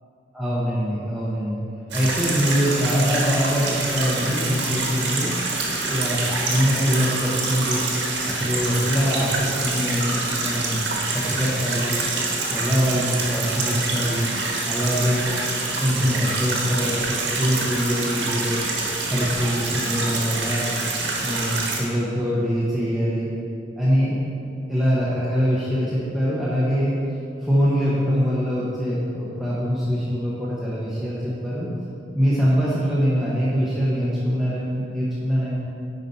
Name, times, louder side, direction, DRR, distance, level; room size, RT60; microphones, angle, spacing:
voice 1, 0.3-1.6 1.9-5.3 5.8-7.9 8.2-10.8 11.1-12.0 12.5-14.3 14.7-15.3 15.8-18.6 19.1-20.7 21.2-23.3 23.8-24.2 24.7-27.0 27.4-31.7 32.1-35.5, equal, ahead, -9 dB, 1.1 m, -23 dB
sound 1, 1.9-21.8, right 3 dB, 75° right, 1.5 m, -26 dB
9.8 x 5.2 x 4.1 m, 2.6 s
head